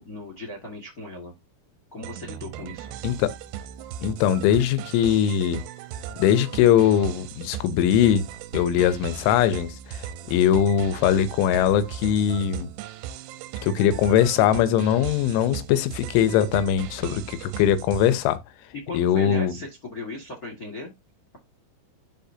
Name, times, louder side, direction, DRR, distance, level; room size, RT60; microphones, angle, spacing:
voice 1, 0.0-1.3 1.9-2.9 18.8-20.9, left 2 dB, 65° left, 0.8 m, -37 dB
sound 1, 2.0-18.3, right 10 dB, 80° right, 2.5 m, -37 dB
voice 2, 4.0-5.6 6.2-8.3 8.5-12.7 13.6-18.4 18.9-19.5, left 10 dB, 90° left, 3.3 m, -21 dB
12.5 x 4.2 x 2.7 m
omnidirectional pair, 5.4 m